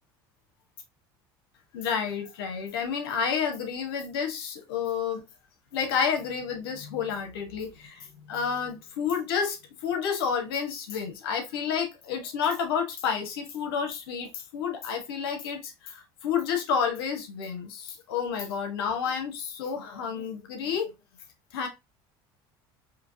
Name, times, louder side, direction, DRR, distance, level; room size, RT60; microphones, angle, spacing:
voice 1, 1.7-5.2 5.7-9.6 9.8-20.9 21.5-21.7, left 6 dB, 85° left, 1.2 m, -30 dB
4.5 x 2.9 x 2.6 m
hypercardioid pair, 85°, 12 cm